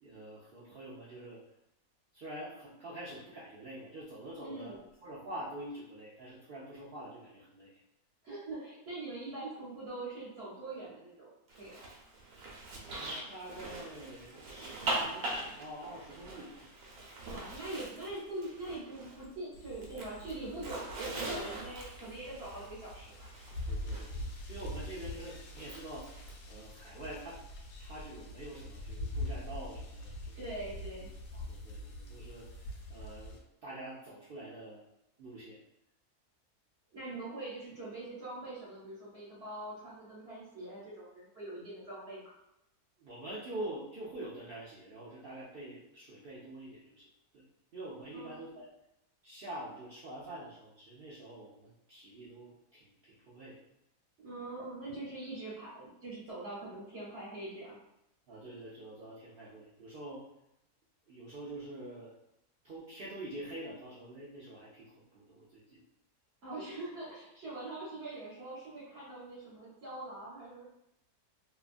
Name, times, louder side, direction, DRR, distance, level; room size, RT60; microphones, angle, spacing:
voice 1, 0.0-1.4 2.1-7.7 12.7-16.7 23.7-26.1 26.5-27.4 27.8-30.6 31.3-34.8 35.2-35.6 43.0-47.1 47.3-47.5 47.7-48.7 49.2-53.6 58.3-60.2 61.1-62.1 62.6-64.9 65.1-65.8, right 1 dB, 90° right, -8 dB, 0.4 m, -46 dB
voice 2, 4.4-4.8 8.2-11.3 11.6-11.8 17.3-23.3 30.4-31.1 36.9-42.3 48.1-48.5 54.2-57.8 66.4-70.6, right 2 dB, 50° right, -8 dB, 1.0 m, -43 dB
Zipper (clothing), 11.5-19.4 19.6-24.1 25.5-26.3, right 2 dB, 70° right, 1.0 m, -41 dB
sound 1, 19.5-33.4, left 1 dB, 85° left, 1.1 m, -44 dB
2.7 x 2.3 x 2.4 m, 0.83 s
omnidirectional pair, 1.7 m